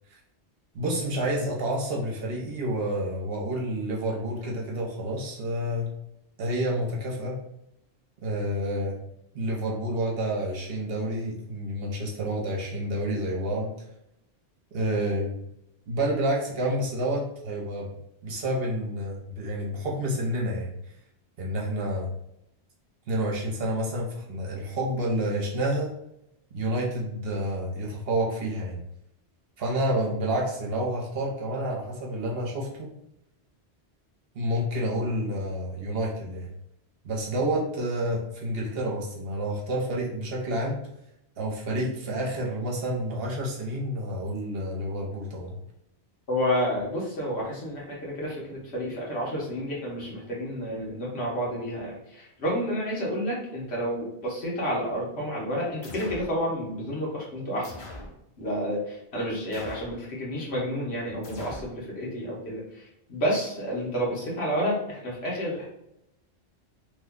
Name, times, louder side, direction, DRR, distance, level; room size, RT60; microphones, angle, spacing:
voice 1, 0.7-5.9 6.4-7.4 8.2-9.0 9.3-13.7 14.7-15.4 15.9-17.9 18.2-20.7 21.4-22.1 23.1-25.9 26.5-28.8 29.6-32.9 34.3-36.5 37.0-40.8 41.4-45.5, right 1 dB, 65° right, -2 dB, 1.0 m, -29 dB
voice 2, 46.3-57.7 58.4-65.7, equal, 75° left, -4 dB, 1.4 m, -30 dB
sound 1, 55.8-56.4 57.6-58.2 59.5-60.0 61.2-61.8, left 2 dB, 40° left, 0.5 m, -42 dB
3.1 x 2.2 x 3.6 m, 0.80 s
omnidirectional pair, 1.1 m